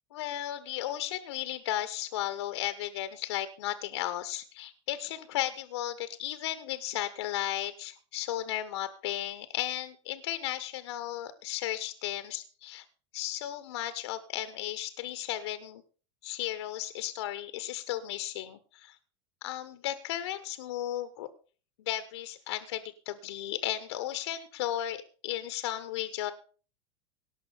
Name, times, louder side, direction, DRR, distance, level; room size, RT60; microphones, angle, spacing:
voice 1, 0.1-12.8 13.1-15.8 16.2-19.0 19.4-21.3 21.9-26.3, left 13 dB, 75° left, 12 dB, 1.2 m, -35 dB
18.0 x 6.2 x 6.7 m, 0.40 s
supercardioid pair, 115°, 14 cm